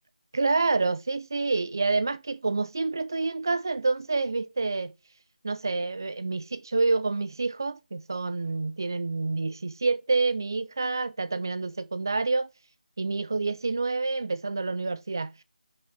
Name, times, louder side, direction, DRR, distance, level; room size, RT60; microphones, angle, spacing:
voice 1, 0.3-4.9 5.4-12.5 13.0-15.3, right 3 dB, 25° right, 0.3 m, -28 dB
5.6 x 4.8 x 5.8 m
figure-of-eight pair, 175°, 5 cm